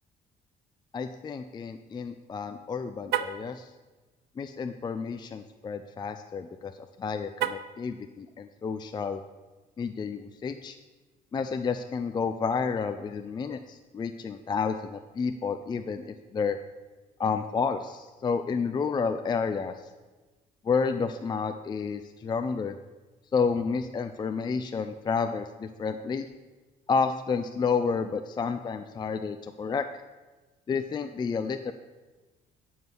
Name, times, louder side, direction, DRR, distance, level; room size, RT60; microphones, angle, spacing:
voice 1, 0.9-3.7 4.4-9.2 9.8-10.8 11.3-16.6 17.2-19.9 20.6-22.7 23.3-26.3 26.9-29.9 30.7-31.7, left 5 dB, 25° left, 8 dB, 0.4 m, -30 dB
Car, 3.0-3.5 7.3-7.8, right 11 dB, 75° right, 0.6 m, -30 dB
9.3 x 5.5 x 6.0 m, 1.2 s
cardioid pair, 110°, 17 cm